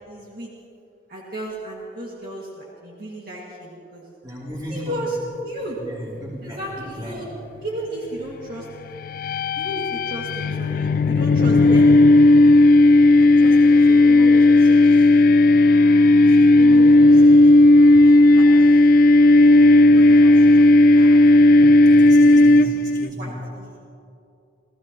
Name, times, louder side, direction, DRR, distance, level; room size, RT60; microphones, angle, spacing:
voice 1, 0.1-0.5 1.1-4.0 4.7-5.2 5.4-5.8 6.4-7.3 7.6-8.7 9.6-11.9 13.2-15.3 16.2-17.9 18.3-18.9 19.8-21.2 22.6-23.7, right 1 dB, 50° right, -5 dB, 2.2 m, -35 dB
voice 2, 4.2-5.1 5.8-7.2 21.9-22.7 22.9-23.4, equal, 25° right, -5 dB, 4.6 m, -35 dB
sound 1, 9.0-23.1, left 2 dB, 50° left, 0.4 m, -13 dB
30.0 x 15.5 x 3.0 m, 2.6 s
head